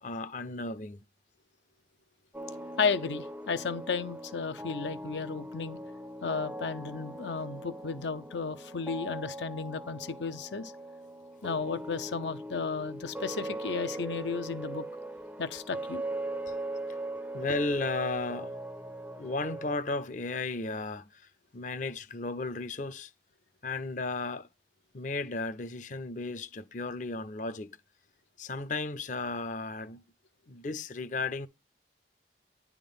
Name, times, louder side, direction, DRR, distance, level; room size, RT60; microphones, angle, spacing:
voice 1, 0.0-1.0 16.3-16.7 17.3-18.6 19.2-23.1 23.6-24.5 24.9-27.8 28.4-30.0 30.5-31.5, left 3 dB, 45° left, 0.5 m, -35 dB
sound 1, 2.3-19.8, right 1 dB, 10° right, 0.4 m, -40 dB
voice 2, 2.8-5.8 6.2-10.7 11.4-14.8 15.4-16.0, left 5 dB, 90° left, 0.7 m, -33 dB
10.0 x 3.6 x 5.3 m
head